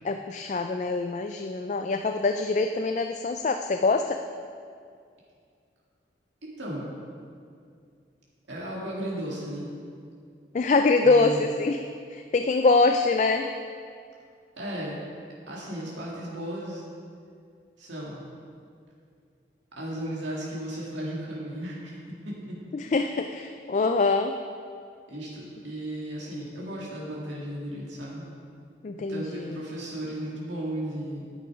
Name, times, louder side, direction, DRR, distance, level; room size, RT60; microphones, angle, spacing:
voice 1, 0.0-4.2 10.5-13.5 22.7-24.3 28.8-29.6, left 3 dB, 40° left, 6 dB, 0.3 m, -24 dB
voice 2, 6.4-6.8 8.5-9.7 11.0-11.4 14.6-15.0 15.5-16.8 17.8-18.3 19.8-22.0 22.2-22.6 22.9-23.1 25.1-28.3 29.0-31.3, right 1 dB, 90° right, -5 dB, 2.3 m, -35 dB
10.0 x 8.3 x 4.9 m, 2.3 s
head